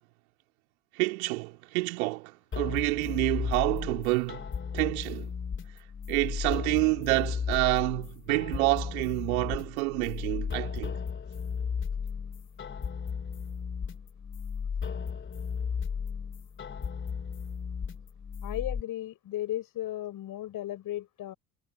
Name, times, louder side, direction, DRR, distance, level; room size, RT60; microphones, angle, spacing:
voice 1, 0.9-4.4 4.7-5.3 6.1-11.0, right 25 dB, 65° right, 3.5 m, -28 dB
sound 1, 2.5-18.8, left 6 dB, 25° left, 2.9 m, -35 dB
voice 2, 18.4-21.3, left 13 dB, 45° left, 6.4 m, -35 dB
figure-of-eight pair, 65°, 46 cm